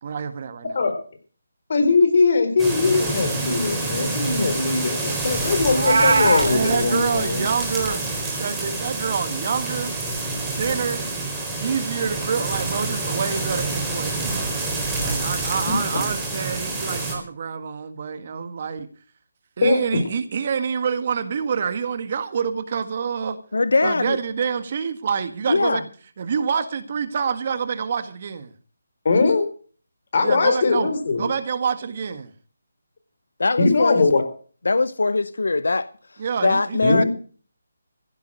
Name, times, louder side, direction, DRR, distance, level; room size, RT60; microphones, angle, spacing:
voice 1, 0.0-0.8 6.4-8.0 8.4-9.9 10.6-11.1 11.6-14.6 15.0-18.9 19.6-23.4 23.8-25.9 26.2-28.5 30.2-30.9 31.1-32.3 36.2-37.0, right 6 dB, 45° right, 1.6 m, -27 dB
voice 2, 1.7-7.4 19.6-19.8 29.0-29.5 30.1-31.3 33.6-34.2 36.8-37.1, left 4 dB, 50° left, 4.3 m, -20 dB
sound 1, 2.6-17.1, right 2 dB, 5° right, 4.0 m, -27 dB
Meow, 5.7-6.5, right 4 dB, 65° right, 1.2 m, -19 dB
voice 3, 23.5-24.2 25.5-25.8 33.4-34.0 34.6-37.0, left 3 dB, 75° left, 0.8 m, -21 dB
15.5 x 9.5 x 6.4 m
figure-of-eight pair, 155°, 0 cm